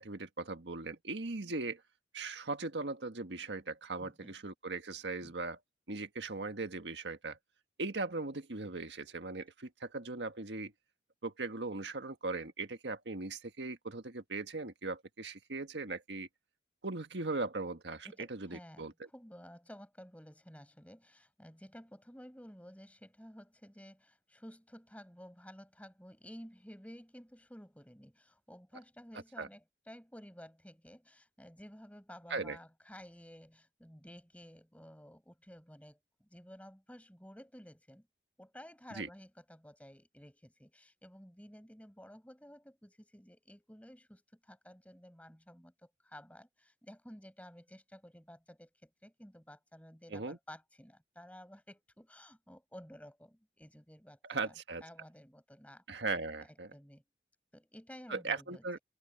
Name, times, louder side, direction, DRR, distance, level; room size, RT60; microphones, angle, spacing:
voice 1, 0.0-1.8 2.1-5.6 5.9-7.4 7.8-10.7 11.2-16.3 16.8-18.9 29.4-29.5 32.3-32.6 38.9-39.1 50.1-50.4 54.2-54.8 55.9-56.7 58.1-58.8, right 3 dB, 80° right, 1.6 m, -39 dB
voice 2, 4.0-4.3 5.2-5.3 18.0-38.1 38.4-54.5 54.8-55.8 56.7-57.0 57.5-58.6, equal, 10° left, 6.2 m, -53 dB
head